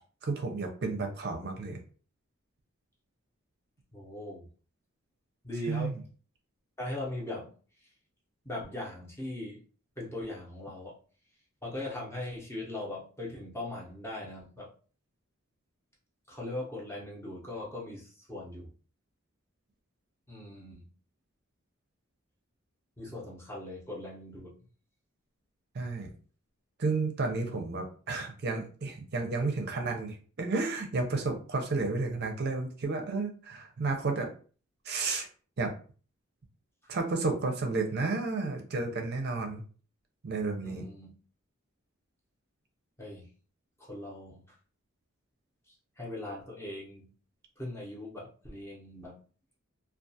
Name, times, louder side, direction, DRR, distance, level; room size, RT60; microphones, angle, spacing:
voice 1, 0.2-1.8 5.7-5.9 25.7-26.1 26.8-34.3 34.9-35.3 35.6-35.7 36.9-39.6 40.2-40.9, right 3 dB, 50° right, 4 dB, 0.5 m, -32 dB
voice 2, 3.9-4.5 5.4-6.0 6.8-7.5 8.4-9.6 10.0-11.0 11.6-14.7 16.3-18.7 20.3-20.9 23.0-24.5 27.2-27.7 40.6-41.1 43.0-43.3 43.8-44.6 46.0-47.1 47.6-49.2, left 1 dB, 15° left, -4 dB, 0.7 m, -40 dB
2.3 x 2.3 x 2.6 m, 0.39 s
head